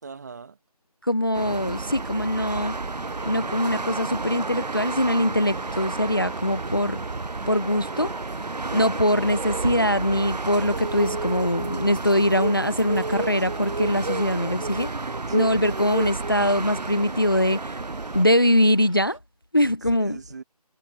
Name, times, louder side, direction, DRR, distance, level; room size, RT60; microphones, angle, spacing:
voice 1, 0.0-0.6 8.6-9.1 15.2-15.7 20.0-20.4, right 5 dB, 25° right, 1.8 m, -41 dB
voice 2, 1.0-2.7 3.3-7.0 7.5-8.1 8.7-14.9 15.3-17.8 18.1-19.2 19.5-20.2, left 1 dB, 35° left, 0.4 m, -22 dB
sound 1, 1.3-18.3, right 3 dB, 85° right, 0.7 m, -32 dB
sound 2, 2.3-14.5, left 13 dB, 5° left, 2.3 m, -58 dB
sound 3, 3.0-19.2, right 2 dB, 55° right, 3.3 m, -37 dB
figure-of-eight pair, 160°, 20 cm